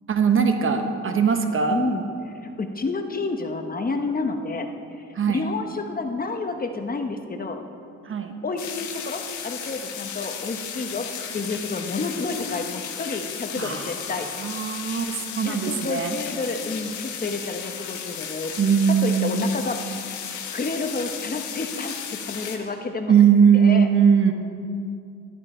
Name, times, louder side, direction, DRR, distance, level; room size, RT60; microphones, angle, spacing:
voice 1, 0.1-1.8 5.1-5.4 8.0-8.4 13.6-13.9 14.4-16.2 18.6-19.5 23.1-24.3, right 7 dB, 45° right, 6 dB, 1.2 m, -20 dB
voice 2, 1.7-7.6 8.4-14.3 15.4-18.5 19.0-19.8 20.5-22.0 22.2-23.1 23.5-23.9, left 3 dB, 30° left, 5 dB, 1.1 m, -30 dB
sound 1, 8.6-22.6, left 7 dB, 75° left, 1.5 m, -34 dB
14.0 x 12.5 x 4.4 m, 2.4 s
cardioid pair, 90°, 30 cm